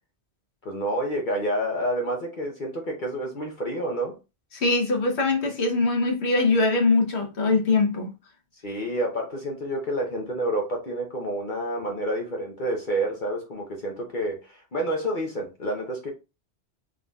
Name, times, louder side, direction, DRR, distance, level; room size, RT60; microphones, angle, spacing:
voice 1, 0.6-4.2 8.6-16.1, right 1 dB, 50° left, 0.9 m, -29 dB
voice 2, 4.5-8.1, left 3 dB, 70° left, 1.3 m, -22 dB
3.8 x 3.6 x 2.3 m
omnidirectional pair, 1.2 m